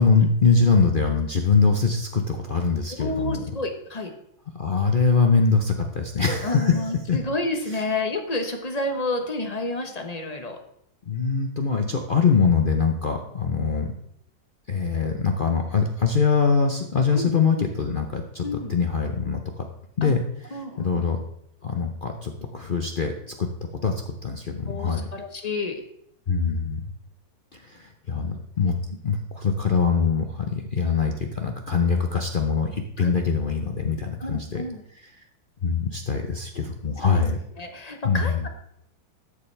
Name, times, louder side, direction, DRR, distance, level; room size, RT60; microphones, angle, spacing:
voice 1, 0.0-3.4 4.5-7.2 11.1-13.9 14.7-19.7 20.0-20.2 20.5-21.2 21.6-23.1 23.4-23.5 23.8-25.1 26.3-26.9 27.5-28.7 29.0-34.6 35.0-35.1 35.6-37.4 38.0-38.3, left 5 dB, 55° left, 4 dB, 0.6 m, -23 dB
voice 2, 3.0-4.1 6.4-10.6 17.1-17.3 18.4-18.7 20.0-20.1 20.5-21.0 24.7-25.8 28.3-28.4 33.0-33.1 34.2-34.8 37.0-37.2 37.6-38.5, left 2 dB, 30° left, 4 dB, 0.9 m, -30 dB
13.0 x 7.1 x 3.3 m, 0.73 s
omnidirectional pair, 1.9 m